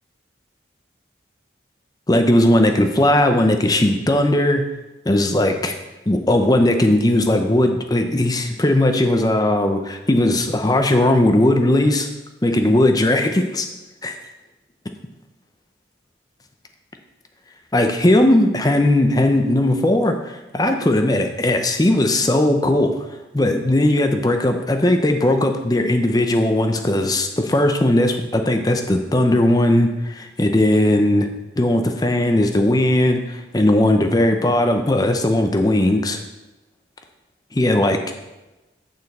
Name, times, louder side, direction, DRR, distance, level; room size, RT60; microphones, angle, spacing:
voice 1, 2.1-4.7 5.1-5.8 6.1-12.1 12.4-13.7 14.0-14.2 17.7-23.0 23.3-31.3 31.6-36.2 37.5-38.0, left 1 dB, 20° left, 5 dB, 0.6 m, -18 dB
8.6 x 6.6 x 4.2 m, 1.1 s
head